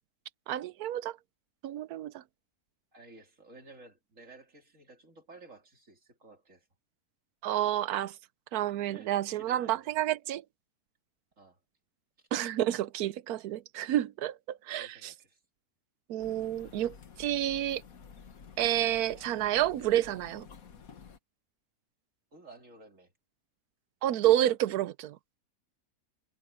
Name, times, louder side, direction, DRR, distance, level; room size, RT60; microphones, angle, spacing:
voice 1, 0.5-1.2 1.6-2.2 7.4-8.1 8.5-10.4 12.3-15.1 16.1-17.8 18.6-20.5 24.0-25.2, right 12 dB, 85° right, 1.1 m, -29 dB
voice 2, 2.9-6.7 8.9-9.9 11.4-11.6 12.2-12.3 14.7-15.4 22.3-23.1, right 3 dB, 55° right, 3.9 m, -54 dB
sound 1, 16.2-21.2, left 6 dB, 65° left, 1.8 m, -51 dB
omnidirectional pair, 1.6 m